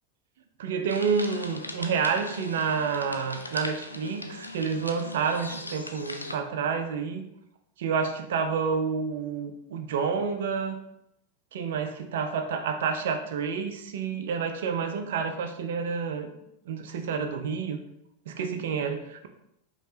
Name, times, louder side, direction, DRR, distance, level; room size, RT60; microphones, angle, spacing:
voice 1, 0.6-7.2 7.8-10.8 11.5-16.3 16.7-17.8 18.3-19.3, right 6 dB, 55° right, 6 dB, 0.5 m, -29 dB
sound 1, 0.9-6.4, left 2 dB, 85° left, 0.4 m, -39 dB
5.2 x 3.0 x 2.7 m, 0.77 s
figure-of-eight pair, 90°, 0 cm